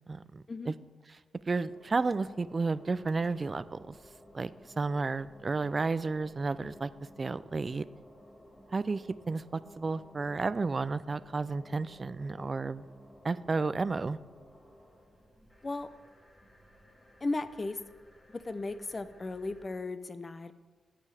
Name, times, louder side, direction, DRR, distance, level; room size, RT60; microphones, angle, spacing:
voice 1, 0.1-0.7 1.5-4.0 4.3-6.9 7.2-7.9 8.7-12.9 13.2-14.2, right 3 dB, 35° right, 17 dB, 0.3 m, -32 dB
sound 1, 1.4-19.8, equal, 15° left, 1.6 m, -56 dB
voice 2, 17.2-17.8 18.3-20.5, left 2 dB, 30° left, 12 dB, 0.5 m, -36 dB
14.5 x 5.5 x 3.3 m, 1.3 s
cardioid pair, 75°, 0 cm